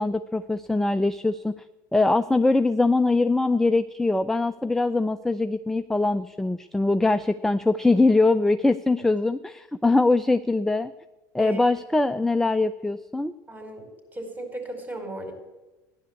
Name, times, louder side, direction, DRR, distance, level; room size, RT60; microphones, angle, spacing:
voice 1, 0.0-1.5 1.9-10.9 11.3-13.3, left 2 dB, 5° left, 11 dB, 0.5 m, -22 dB
voice 2, 13.5-15.3, right 1 dB, 20° right, 5 dB, 4.8 m, -36 dB
15.0 x 10.5 x 8.1 m, 1.1 s
hypercardioid pair, 80°, 10 cm